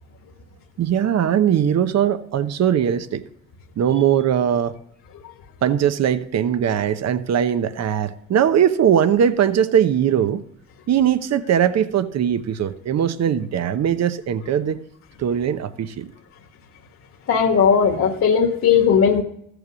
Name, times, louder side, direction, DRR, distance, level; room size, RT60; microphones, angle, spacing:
voice 1, 0.8-3.2 3.8-4.7 5.6-10.4 10.9-14.8 15.2-16.1, right 9 dB, 50° right, 12 dB, 1.0 m, -20 dB
voice 2, 17.3-19.2, left 7 dB, 50° left, 1 dB, 1.6 m, -17 dB
14.0 x 8.2 x 6.3 m, 0.72 s
cardioid pair, 95°, 34 cm